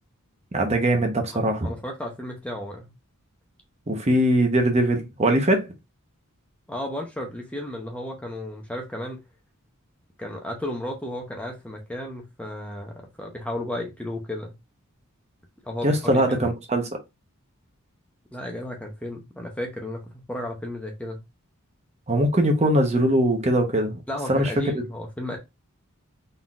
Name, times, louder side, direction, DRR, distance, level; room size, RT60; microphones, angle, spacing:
voice 1, 0.5-1.7 3.9-5.7 15.8-16.9 22.1-24.0 24.3-24.5, right 1 dB, 30° right, 0.8 m, -21 dB
voice 2, 1.6-2.9 6.7-9.2 10.2-14.6 15.6-16.5 18.3-21.2 24.1-25.4, left 1 dB, 5° left, 0.8 m, -33 dB
4.0 x 3.8 x 2.3 m
head